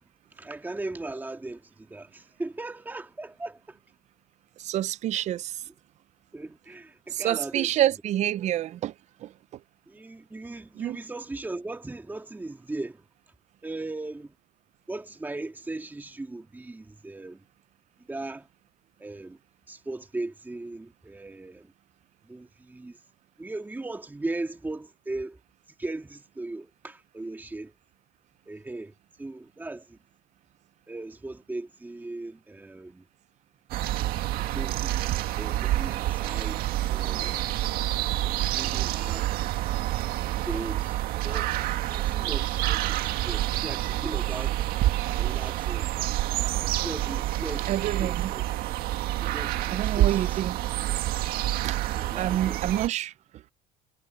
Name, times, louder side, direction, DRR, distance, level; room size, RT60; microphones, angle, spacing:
voice 1, 0.3-3.8 5.1-5.2 6.3-7.7 9.9-13.0 13.6-14.3 14.9-17.4 18.1-18.5 19.0-19.4 19.7-21.7 22.3-23.0 23.4-25.4 25.8-27.7 28.5-28.9 29.2-30.0 30.9-33.1 34.5-36.6 36.9-37.5 38.4-39.3 40.5-41.0 41.2-41.5 41.9-44.6 45.2-45.9 46.8-48.4 49.2-50.4 51.6-52.6, right 2 dB, 10° right, 2.4 m, -38 dB
voice 2, 4.6-5.5 7.1-8.9 9.2-9.3 10.8-11.0 47.7-48.3 49.7-50.6 51.6-51.8 52.2-53.1, right 12 dB, 45° right, 0.5 m, -27 dB
sound 1, 33.7-52.9, right 15 dB, 70° right, 2.0 m, -28 dB
cardioid pair, 115°, 16 cm